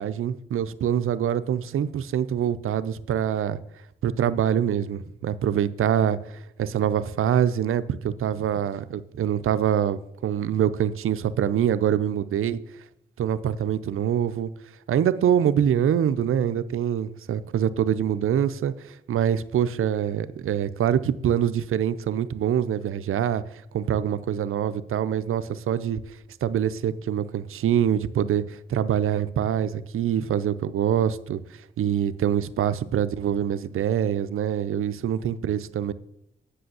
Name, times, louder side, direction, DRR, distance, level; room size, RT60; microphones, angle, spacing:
voice 1, 0.0-3.6 4.0-12.6 13.2-14.5 14.9-23.4 23.7-26.0 26.4-31.4 31.8-35.9, right 9 dB, 85° right, 0.5 m, -25 dB
7.8 x 6.2 x 7.9 m
cardioid pair, 55°, 21 cm